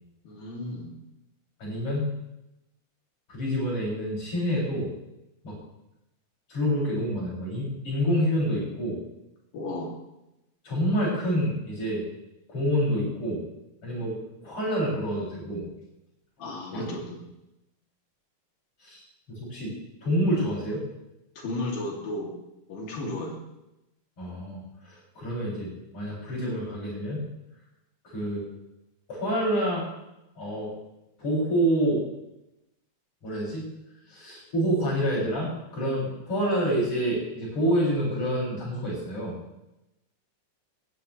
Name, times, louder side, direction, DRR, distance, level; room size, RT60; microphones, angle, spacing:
voice 1, 0.2-1.0 9.5-9.9 16.4-17.2 21.4-22.3 22.7-23.4, left 1 dB, 80° left, -1 dB, 4.8 m, -34 dB
voice 2, 1.6-2.1 3.3-4.9 5.4-5.6 6.5-9.0 10.6-12.0 12.5-13.4 13.8-15.6 16.7-16.9 18.8-19.0 19.3-19.7 20.0-20.8 24.2-27.3 28.0-28.4 29.1-29.9 30.4-30.7 31.2-32.0 33.2-33.6 34.1-39.3, equal, 40° left, -5 dB, 8.3 m, -27 dB
18.5 x 15.0 x 3.4 m, 0.90 s
omnidirectional pair, 4.0 m